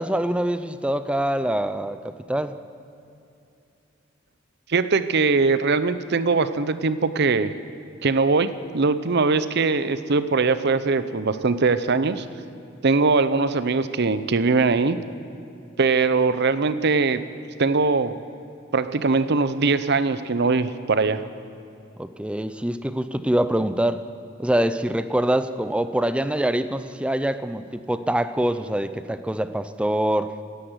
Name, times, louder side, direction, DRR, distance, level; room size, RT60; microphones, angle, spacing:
voice 1, 0.0-2.5 22.0-24.0 24.4-30.3, right 1 dB, 5° right, 12 dB, 0.5 m, -24 dB
voice 2, 4.7-7.5 8.0-12.2 12.8-15.0 15.8-17.2 17.6-18.2 18.7-21.2, right 4 dB, 60° right, 13 dB, 0.7 m, -21 dB
17.0 x 10.0 x 8.1 m, 2.7 s
head